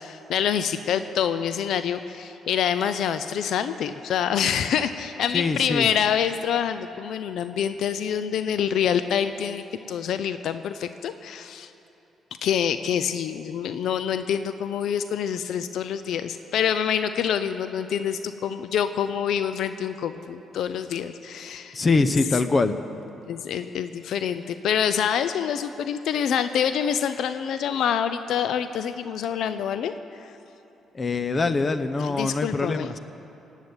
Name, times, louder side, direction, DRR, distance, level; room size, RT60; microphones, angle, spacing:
voice 1, 0.0-11.7 12.4-21.8 23.3-30.3 32.0-32.9, left 8 dB, 75° left, 11 dB, 0.5 m, -26 dB
voice 2, 5.3-5.9 21.7-22.8 30.9-33.0, left 3 dB, 35° left, 11 dB, 0.8 m, -23 dB
18.0 x 8.2 x 9.6 m, 2.9 s
cardioid pair, 90°, 0 cm